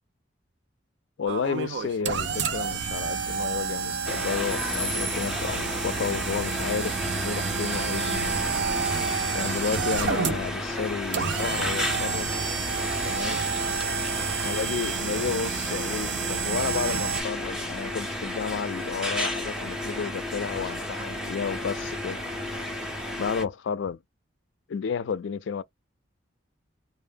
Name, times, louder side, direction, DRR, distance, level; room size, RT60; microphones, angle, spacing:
voice 1, 1.2-6.9 7.2-8.4 9.3-12.3 13.0-13.4 14.4-22.2 23.2-24.0 24.7-25.6, left 6 dB, 70° left, 0.4 m, -31 dB
sound 1, 1.3-17.2, right 6 dB, 60° right, 0.4 m, -30 dB
sound 2, 4.0-23.4, left 1 dB, 5° right, 0.5 m, -32 dB
2.1 x 2.0 x 3.3 m
head